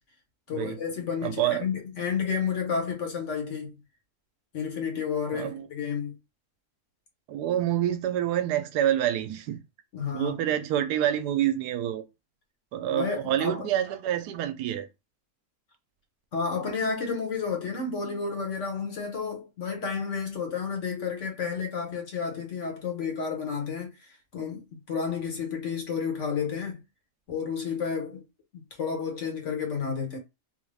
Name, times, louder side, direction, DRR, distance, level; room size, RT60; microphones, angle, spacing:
voice 1, 0.5-3.7 4.5-6.2 9.9-10.3 12.9-13.7 16.3-26.8 27.3-28.2 28.8-30.2, left 6 dB, 50° left, 1.4 m, -31 dB
voice 2, 1.2-1.7 5.3-5.7 7.3-9.6 10.1-12.0 12.7-14.9, right 11 dB, 85° right, 1.1 m, -27 dB
3.8 x 2.3 x 3.3 m
omnidirectional pair, 1.7 m